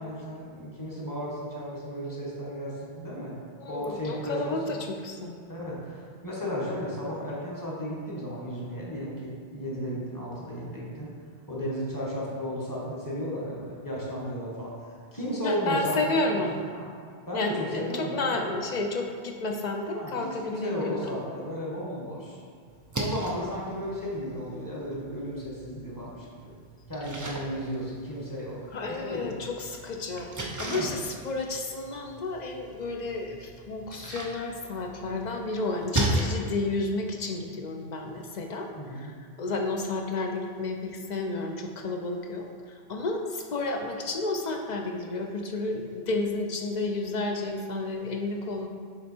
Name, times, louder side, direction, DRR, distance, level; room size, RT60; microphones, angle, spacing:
voice 1, 0.0-3.3 3.7-4.6 5.5-11.1 11.5-14.7 15.1-16.4 16.7-16.9 17.3-18.5 19.9-22.4 23.0-26.5 26.9-28.6 28.9-29.4 30.6-30.9 38.7-39.1, equal, 20° left, -6 dB, 1.2 m, -34 dB
voice 2, 3.6-5.4 15.4-16.6 17.3-21.2 28.7-38.7 38.9-42.5 42.9-48.7, left 2 dB, 55° left, 3 dB, 0.5 m, -31 dB
Splash splatter, 22.7-36.2, right 2 dB, 25° right, 0.4 m, -37 dB
6.8 x 3.2 x 4.3 m, 2.1 s
omnidirectional pair, 1.1 m